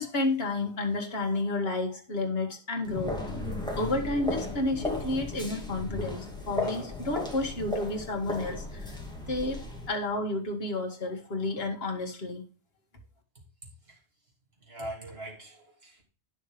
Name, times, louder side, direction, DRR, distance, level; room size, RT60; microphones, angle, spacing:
voice 1, 0.0-3.3 3.8-9.0 9.3-12.4, left 2 dB, 60° left, 3 dB, 2.0 m, -31 dB
sound 1, 2.8-9.9, left 2 dB, 5° left, 2.2 m, -35 dB
voice 2, 14.6-16.0, right 1 dB, 60° right, 0 dB, 3.3 m, -41 dB
10.0 x 6.4 x 5.0 m, 0.36 s
omnidirectional pair, 1.1 m